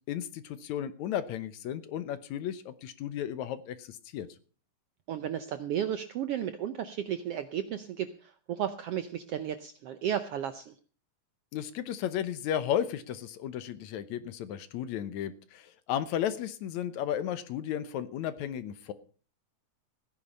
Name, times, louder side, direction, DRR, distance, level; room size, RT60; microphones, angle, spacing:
voice 1, 0.1-4.3 11.5-18.9, left 10 dB, 70° left, 13 dB, 2.1 m, -34 dB
voice 2, 5.1-10.7, right 10 dB, 75° right, 10 dB, 1.4 m, -34 dB
15.5 x 10.0 x 5.4 m, 0.39 s
omnidirectional pair, 3.6 m